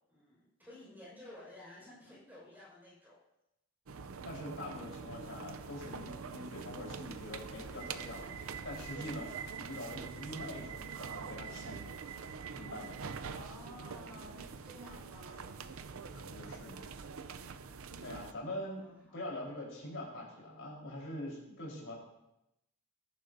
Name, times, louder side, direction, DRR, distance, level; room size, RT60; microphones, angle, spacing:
voice 1, 0.1-3.2 13.3-15.7 18.4-19.4, left 1 dB, 10° right, -6 dB, 5.2 m, -54 dB
sound 1, 3.9-18.3, right 5 dB, 85° right, 0.6 m, -44 dB
voice 2, 4.2-11.9 12.5-13.0 16.1-16.9 18.0-18.8 19.1-22.0, left 1 dB, 80° left, -3 dB, 4.2 m, -44 dB
sound 2, 7.0-18.2 18.5-19.6 20.1-20.2, equal, 20° left, 5.3 m, -61 dB
19.0 x 10.5 x 2.7 m, 0.86 s
head